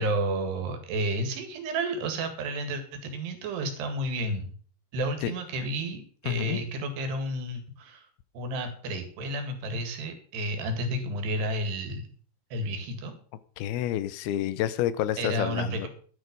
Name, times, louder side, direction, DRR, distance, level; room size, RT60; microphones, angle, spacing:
voice 1, 0.0-4.5 4.9-8.1 8.3-12.1 12.5-13.1 15.2-15.9, right 1 dB, 85° right, 7 dB, 4.2 m, -31 dB
voice 2, 6.3-6.6 13.6-15.9, left 12 dB, 80° left, 15 dB, 2.7 m, -29 dB
12.5 x 9.8 x 5.3 m, 0.43 s
omnidirectional pair, 4.6 m